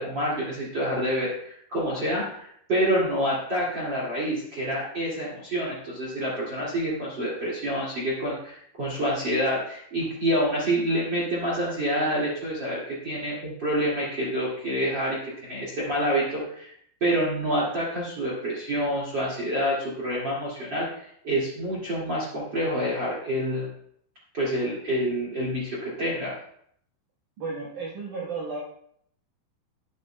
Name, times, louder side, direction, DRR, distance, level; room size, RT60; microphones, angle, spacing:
voice 1, 0.0-16.7 17.0-23.7 24.3-26.3, equal, 55° right, -5 dB, 1.3 m, -27 dB
voice 2, 27.4-28.6, right 4 dB, 90° right, -3 dB, 1.7 m, -33 dB
11.5 x 11.0 x 2.2 m, 0.67 s
omnidirectional pair, 5.7 m